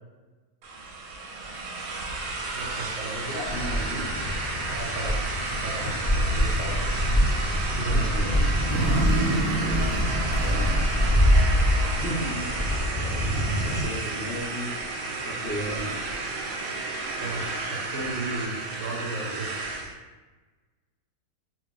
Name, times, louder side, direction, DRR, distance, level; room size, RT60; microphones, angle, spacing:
sound 1, 0.6-19.9, right 3 dB, 90° right, 1.0 m, -32 dB
voice 1, 2.5-3.2 4.7-5.2 5.6-6.8 7.7-8.0 8.7-9.7 17.2-19.5, right 2 dB, 65° right, -2 dB, 0.9 m, -34 dB
voice 2, 3.1-4.3 7.7-8.5 10.4-10.7 11.9-14.7 15.2-16.0, equal, 55° left, -5 dB, 0.8 m, -35 dB
sound 2, 3.4-13.9, equal, 15° left, 0.8 m, -25 dB
sound 3, 8.7-12.0 12.4-12.5, right 2 dB, 85° left, 1.1 m, -30 dB
2.5 x 2.3 x 3.7 m, 1.3 s
omnidirectional pair, 1.5 m